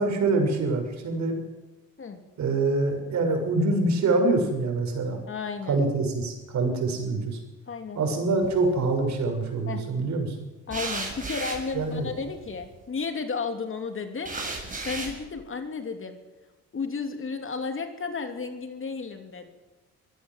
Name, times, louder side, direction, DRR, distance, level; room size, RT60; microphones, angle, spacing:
voice 1, 0.0-1.3 2.4-5.2 5.7-7.4 7.9-10.4 11.7-12.1, right 3 dB, 65° right, 4 dB, 6.3 m, -25 dB
voice 2, 5.3-5.8 7.7-8.0 9.7-9.8 10.7-16.2 16.7-19.5, left 4 dB, 45° left, 6 dB, 3.1 m, -33 dB
sound 1, 8.4-9.0 10.7-12.7 14.2-15.2, right 3 dB, 25° right, 7.4 m, -35 dB
23.0 x 16.0 x 7.6 m, 1.1 s
cardioid pair, 90°, 30 cm